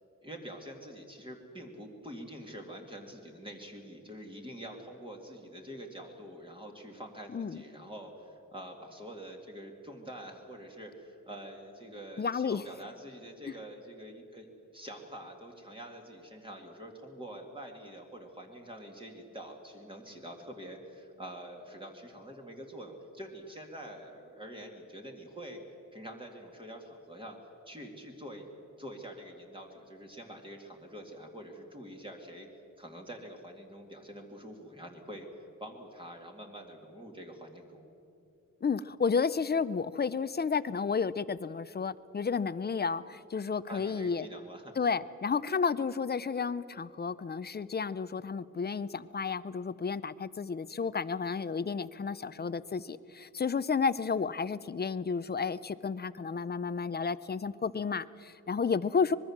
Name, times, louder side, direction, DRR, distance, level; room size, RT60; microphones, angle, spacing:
voice 1, 0.2-14.5 14.7-25.6 25.9-27.4 27.7-28.5 28.8-32.5 32.8-35.3 35.6-37.8 43.7-44.7, right 1 dB, 15° right, 1 dB, 2.3 m, -46 dB
voice 2, 7.3-7.6 12.2-12.6 38.6-44.3 44.8-59.2, left 5 dB, 30° left, 16 dB, 0.5 m, -32 dB
25.0 x 21.5 x 7.3 m, 2.7 s
wide cardioid pair, 165°, 31 cm